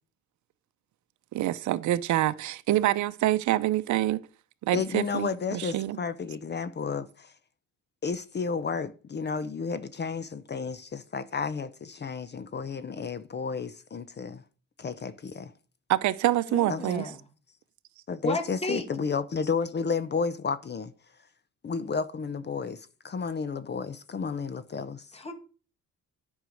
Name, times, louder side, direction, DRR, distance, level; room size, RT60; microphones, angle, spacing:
voice 1, 1.3-4.2 4.7-6.0 15.9-17.1, right 14 dB, 70° right, 0.7 m, -26 dB
voice 2, 4.7-7.3 8.0-14.4 14.8-15.5 16.7-16.8 18.1-20.9 21.6-25.1, left 5 dB, 35° left, 0.7 m, -32 dB
voice 3, 16.5-17.2 18.2-18.9 25.1-25.3, left 2 dB, 20° left, 1.8 m, -33 dB
9.2 x 5.6 x 6.3 m
cardioid pair, 90°, 30 cm